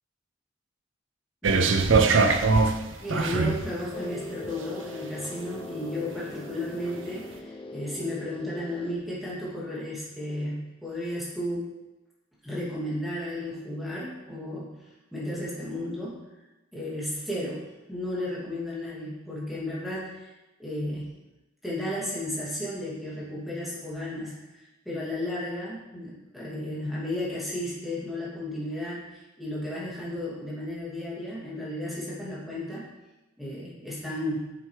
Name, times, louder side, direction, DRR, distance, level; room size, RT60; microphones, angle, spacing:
voice 1, 1.4-2.4 3.0-11.7 12.4-14.7 15.1-16.2 16.7-20.3 20.6-21.1 21.6-32.9 33.4-34.4, left 1 dB, ahead, -8 dB, 2.6 m, -34 dB
sound 1, 1.4-3.7 4.4-4.5, right 4 dB, 90° right, 0.6 m, -21 dB
sound 2, 3.9-8.9, left 2 dB, 30° left, 0.5 m, -40 dB
8.6 x 7.6 x 3.3 m, 1.0 s
head